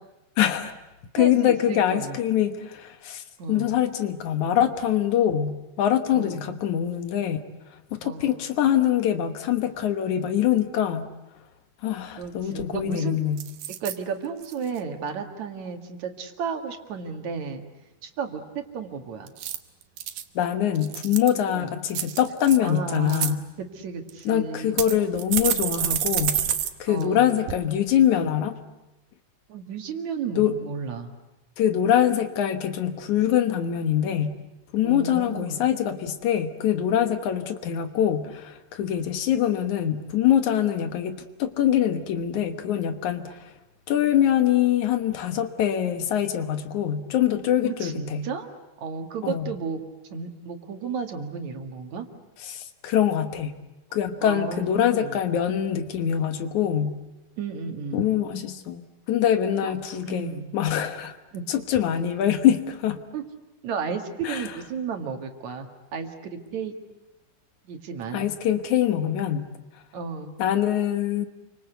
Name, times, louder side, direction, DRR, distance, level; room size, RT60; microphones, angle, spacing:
voice 1, 0.4-0.7 1.1-7.4 7.9-11.0 11.8-13.4 20.4-23.4 24.3-26.4 26.8-28.6 30.4-30.6 31.6-34.4 34.7-43.5 43.9-48.3 49.2-49.5 52.4-53.6 53.9-57.0 57.9-58.8 59.1-61.2 61.5-63.0 64.2-64.5 68.1-69.5 70.4-71.3, left 10 dB, 75° left, 9 dB, 2.7 m, -24 dB
voice 2, 1.2-2.2 3.4-3.7 6.1-6.5 8.0-8.4 12.2-13.2 13.7-17.6 18.0-19.3 21.5-21.7 22.6-24.8 26.9-27.4 29.5-31.1 34.8-35.7 47.6-48.5 48.8-49.8 50.1-52.1 54.2-55.2 57.4-58.1 59.6-59.7 60.0-60.5 61.3-61.5 63.1-63.2 63.6-66.8 67.6-68.3 69.9-70.3, right 5 dB, 65° right, 5 dB, 3.2 m, -33 dB
sound 1, 12.2-12.3 12.6-12.9 13.4-14.0 14.4-14.8 19.3-20.2 20.8-21.4 21.9-22.6 23.0-23.3 24.1-24.2 24.8-26.7 27.0-27.1 27.5-27.6, right 11 dB, 85° right, 2.7 m, -28 dB
29.5 x 24.5 x 8.1 m, 1.0 s
omnidirectional pair, 3.5 m